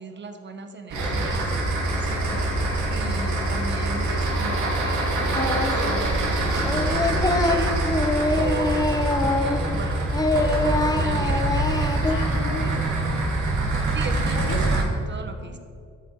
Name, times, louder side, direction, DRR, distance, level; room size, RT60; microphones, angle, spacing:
voice 1, 0.0-8.0 8.3-9.0 9.4-10.0 10.4-12.1 12.6-12.7 13.1-13.4 13.9-15.6, right 3 dB, 35° right, 7 dB, 1.1 m, -37 dB
sound 1, 0.9-14.8, right 2 dB, 75° right, 2.6 m, -24 dB
Singing, 5.3-5.9 6.2-9.8 10.1-12.2, left 2 dB, 10° left, 0.9 m, -24 dB
voice 2, 11.9-13.7 14.3-14.6 15.4-15.6, left 4 dB, 80° left, 3 dB, 1.5 m, -37 dB
12.5 x 5.5 x 4.7 m, 2.3 s
cardioid pair, 90°, 30 cm